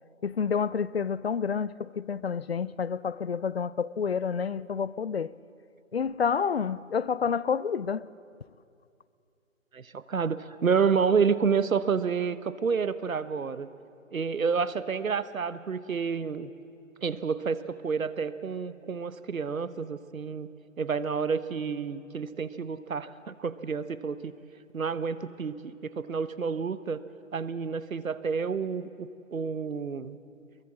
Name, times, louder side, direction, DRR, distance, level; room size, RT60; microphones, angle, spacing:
voice 1, 0.2-5.3 5.9-8.1, left 6 dB, 50° left, 0.5 m, -29 dB
voice 2, 9.7-13.7 14.1-16.5 17.0-20.5 20.8-24.3 24.7-27.0 27.3-30.2, right 6 dB, 80° right, 1.2 m, -29 dB
24.0 x 22.5 x 7.5 m
figure-of-eight pair, 155°, 41 cm